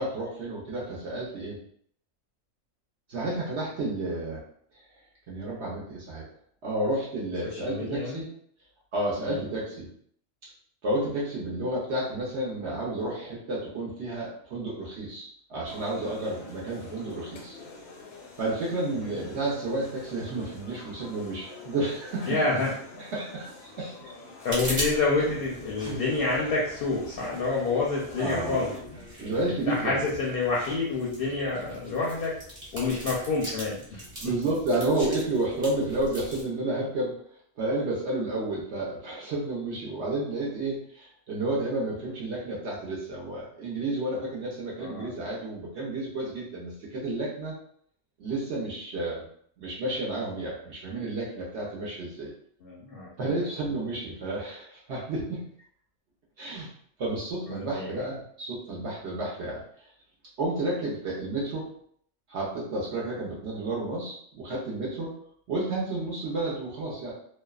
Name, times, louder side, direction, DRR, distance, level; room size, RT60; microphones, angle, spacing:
voice 1, 0.0-1.6 3.1-4.4 5.3-6.2 6.6-8.3 8.9-9.9 10.8-17.6 17.9-18.0 18.4-22.4 23.0-24.1 25.9-26.0 28.2-28.6 29.2-30.0 34.2-37.2 37.6-47.5 48.2-49.2 49.6-52.3 53.2-55.5 56.4-56.7 57.0-59.6 60.4-61.7 62.3-65.1 65.5-67.1, right 2 dB, 65° right, -5 dB, 0.9 m, -31 dB
voice 2, 7.4-8.2 9.2-9.4 18.9-19.1 22.3-22.7 23.8-23.9 24.4-29.0 29.5-32.3 32.7-34.0 44.8-45.1 52.6-53.3 57.5-58.0, left 3 dB, 60° left, -4 dB, 0.6 m, -28 dB
sound 1, 15.7-28.8, left 3 dB, 90° left, 1.0 m, -47 dB
sound 2, 24.5-36.4, equal, 35° right, 1.0 m, -40 dB
2.6 x 2.1 x 2.3 m, 0.63 s
omnidirectional pair, 1.4 m